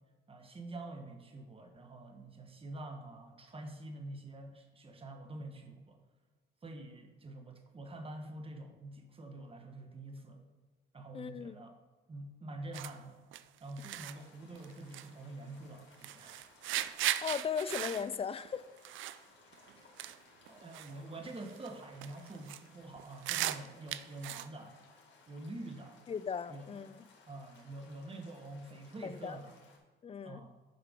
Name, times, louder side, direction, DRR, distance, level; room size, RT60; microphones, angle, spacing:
voice 1, 0.3-6.0 6.6-10.4 10.9-11.7 12.1-13.2 13.6-16.4 19.5-19.6 20.5-24.8 25.3-26.0 26.5-26.7 27.3-29.5 30.2-30.5, right 2 dB, 30° right, 4 dB, 1.3 m, -46 dB
voice 2, 11.1-11.6 17.2-18.6 26.1-27.0 29.0-29.4 30.0-30.5, left 7 dB, 30° left, 15 dB, 0.4 m, -37 dB
sound 1, 12.7-12.9 13.3-13.4 13.8-14.2 14.6-15.1 15.4-15.7 16.0-19.2 19.5-19.7 20.0-20.2 20.5-20.9 21.2-21.7 22.0-22.6 23.0-24.5, right 13 dB, 80° right, 0.4 m, -38 dB
sound 2, 13.7-29.8, left 4 dB, 70° left, 2.1 m, -62 dB
9.3 x 5.7 x 3.7 m, 1.3 s
cardioid pair, 90°, 20 cm